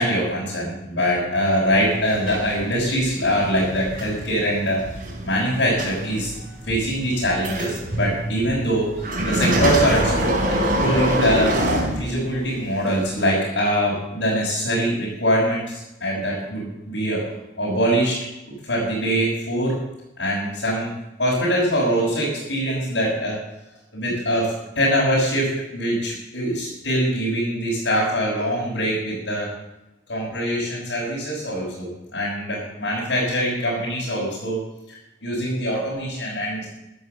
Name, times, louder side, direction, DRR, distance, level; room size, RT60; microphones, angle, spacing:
voice 1, 0.0-4.9 5.2-10.4 10.8-11.5 12.0-17.2 17.6-19.8 20.2-20.9 21.2-23.4 23.9-29.5 30.1-34.6 34.9-36.7, equal, 75° left, -6 dB, 5.9 m, -23 dB
sound 1, 1.7-12.5 13.2-13.3, right 1 dB, 50° right, 4.6 m, -25 dB
15.0 x 11.0 x 6.7 m, 0.95 s
head